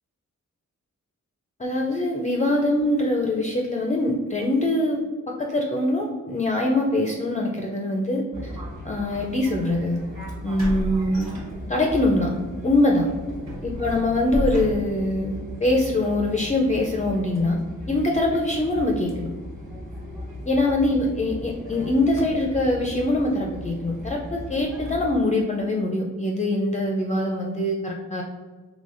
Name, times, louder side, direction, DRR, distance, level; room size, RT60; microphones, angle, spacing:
voice 1, 1.6-8.5 8.8-10.0 10.4-11.4 11.7-12.4 12.6-13.1 13.6-17.6 17.9-19.3 20.5-28.2, left 1 dB, 25° left, 0 dB, 0.4 m, -23 dB
Fixed-wing aircraft airplane, 8.3-25.2, left 1 dB, 25° right, 1.4 m, -37 dB
sound 1, 10.6-12.0 12.4-12.6 13.1-15.2, right 1 dB, 60° right, 1.1 m, -32 dB
4.0 x 2.9 x 2.5 m, 1.4 s
cardioid pair, 70°, 30 cm